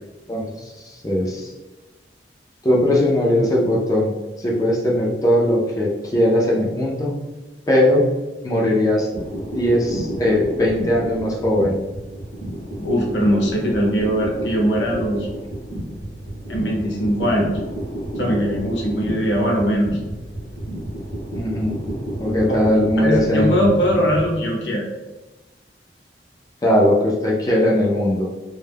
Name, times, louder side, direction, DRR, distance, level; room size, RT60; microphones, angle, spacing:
voice 1, 0.3-1.5 2.6-7.2 7.7-8.1 8.4-9.1 9.5-11.8 21.3-21.8 22.2-23.7 26.6-28.3, left 1 dB, 20° left, -3 dB, 0.4 m, -19 dB
sound 1, 9.1-24.4, right 1 dB, 40° left, 0.7 m, -30 dB
voice 2, 12.7-15.3 16.5-17.5 18.2-20.0 22.5-22.6 23.0-24.9, equal, 85° left, -2 dB, 0.7 m, -21 dB
2.2 x 2.0 x 3.3 m, 1.1 s
head